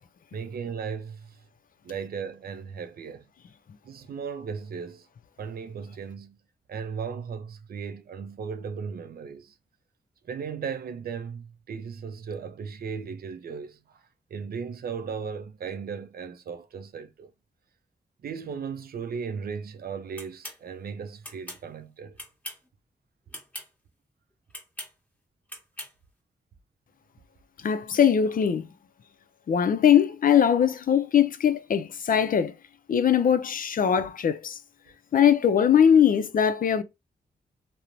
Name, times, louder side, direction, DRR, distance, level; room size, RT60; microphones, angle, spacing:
voice 1, 0.3-1.4 1.8-3.3 3.8-5.1 5.4-6.4 6.7-9.6 10.2-14.0 14.3-17.3 18.2-22.2, right 6 dB, 65° right, 0.4 m, -36 dB
sound 1, 20.2-20.6 21.2-21.6 22.2-22.7 23.3-23.7 24.5-24.9 25.5-25.9, left 1 dB, 10° left, 1.1 m, -40 dB
voice 2, 27.6-28.7 29.5-32.5 32.9-34.6 35.1-36.8, left 8 dB, 55° left, 0.4 m, -21 dB
2.9 x 2.0 x 2.5 m
cardioid pair, 70°, 17 cm